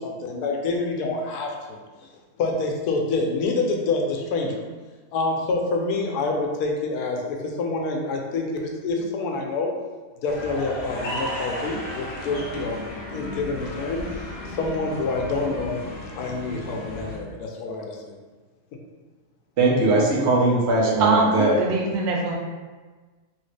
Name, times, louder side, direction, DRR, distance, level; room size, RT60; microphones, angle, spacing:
voice 1, 0.0-1.5 2.4-4.6 5.1-9.7 10.2-12.8 13.1-14.0 14.6-15.8 16.2-18.2, left 3 dB, 80° left, 1 dB, 1.1 m, -27 dB
sound 1, 10.3-17.2, left 1 dB, 55° left, 0.7 m, -34 dB
voice 2, 19.6-21.6, right 2 dB, 55° right, -3 dB, 0.9 m, -20 dB
voice 3, 21.0-22.4, right 3 dB, 80° right, 0 dB, 1.2 m, -22 dB
3.1 x 2.8 x 3.2 m, 1.4 s
omnidirectional pair, 1.6 m